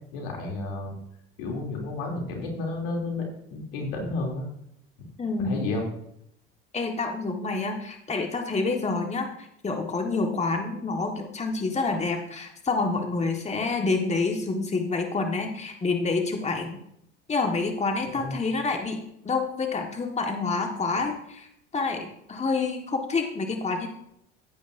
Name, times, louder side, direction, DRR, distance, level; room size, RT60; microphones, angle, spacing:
voice 1, 0.1-1.0 1.4-3.2 3.5-4.4 5.0-5.1 5.4-5.8 18.1-18.4, left 2 dB, 75° left, 1 dB, 3.0 m, -31 dB
voice 2, 5.2-5.6 6.7-16.8 17.3-19.0 19.2-21.5 21.7-23.9, left 3 dB, 20° left, 3 dB, 1.6 m, -28 dB
15.0 x 9.2 x 2.7 m, 0.75 s
hypercardioid pair, 70°, 30 cm